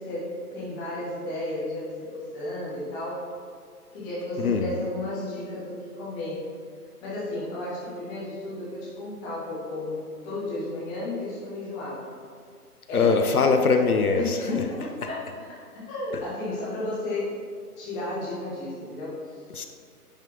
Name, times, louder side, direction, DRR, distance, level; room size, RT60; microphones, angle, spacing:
voice 1, 0.0-3.2 3.9-6.5 7.0-12.1 12.9-13.2 14.1-17.4 17.8-19.4, left 2 dB, 10° left, -8 dB, 0.9 m, -33 dB
voice 2, 12.9-14.4 19.5-19.6, left 4 dB, 65° left, 5 dB, 0.8 m, -21 dB
9.9 x 5.8 x 3.0 m, 2.1 s
figure-of-eight pair, 140°, 47 cm